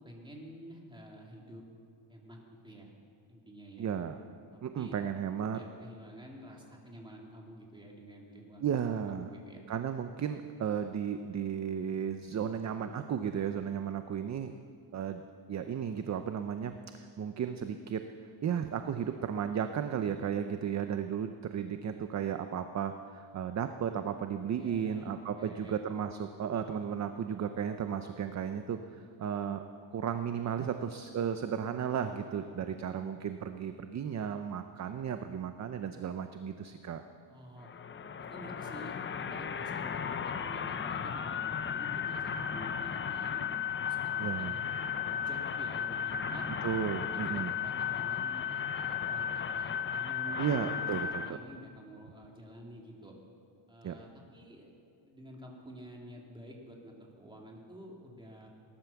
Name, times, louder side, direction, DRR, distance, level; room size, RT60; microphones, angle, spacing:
voice 1, 0.0-1.6 2.1-2.4 2.6-2.9 3.3-3.9 4.5-5.0 5.4-8.6 8.9-9.6 24.5-25.9 32.2-32.8 37.3-37.7 38.2-46.4 47.1-53.2 53.7-54.7 55.1-58.5, equal, 10° right, -1 dB, 2.6 m, -50 dB
voice 2, 3.8-4.2 4.6-5.6 8.6-9.3 9.7-14.5 14.9-15.2 15.5-18.0 18.4-28.8 29.2-29.6 29.9-37.0 44.2-44.5 46.6-47.5 50.4-51.4 53.8-53.9, right 8 dB, 35° right, 8 dB, 0.6 m, -34 dB
sound 1, 37.6-51.3, left 7 dB, 25° left, 0.4 m, -35 dB
18.0 x 11.5 x 7.0 m, 2.3 s
cardioid pair, 145°, 50 cm